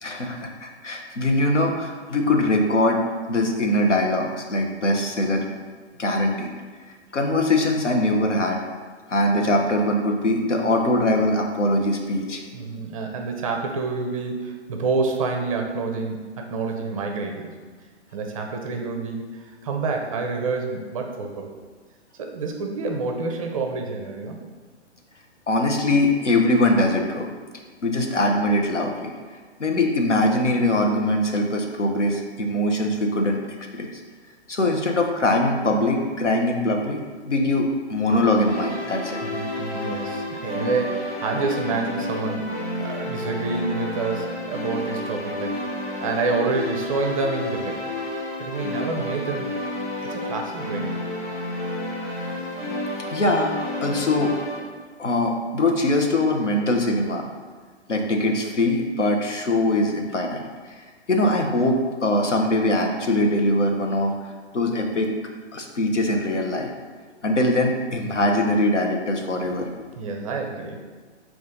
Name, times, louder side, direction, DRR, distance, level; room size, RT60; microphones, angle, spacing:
voice 1, 0.0-3.0 3.3-5.5 6.0-6.5 7.1-8.6 9.1-12.4 25.5-27.3 27.8-29.1 29.6-33.4 33.7-33.9 34.5-39.2 53.1-53.5 53.8-54.3 55.0-57.3 57.9-64.1 64.5-65.1 65.5-66.7 67.2-69.9, left 1 dB, 85° left, 2 dB, 0.7 m, -22 dB
voice 2, 12.5-17.5 18.1-21.5 22.2-24.4 39.2-45.6 46.0-47.8 48.4-49.5 50.0-50.9 70.0-70.8, right 3 dB, 30° right, 2 dB, 0.4 m, -28 dB
sound 1, 38.4-54.6, left 1 dB, 45° left, 1.1 m, -30 dB
5.0 x 2.4 x 3.7 m, 1.5 s
figure-of-eight pair, 120°, 35 cm